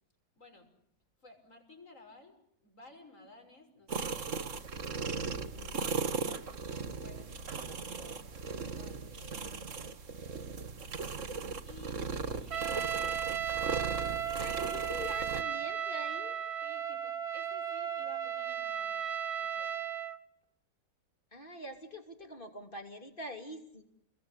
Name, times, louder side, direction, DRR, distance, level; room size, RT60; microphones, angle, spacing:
voice 1, 0.4-0.7 1.2-4.6 7.0-9.6 10.9-11.2 11.6-12.9 16.6-19.1 19.4-19.7, left 2 dB, 50° left, 5 dB, 6.6 m, -56 dB
sound 1, 3.9-15.4, right 5 dB, 50° right, 1.8 m, -38 dB
voice 2, 5.5-6.6 14.3-16.4 21.3-23.8, equal, 30° left, 5 dB, 3.3 m, -45 dB
Trumpet, 12.5-20.2, right 8 dB, 70° right, 1.8 m, -35 dB
29.0 x 21.5 x 8.3 m, 0.74 s
omnidirectional pair, 1.7 m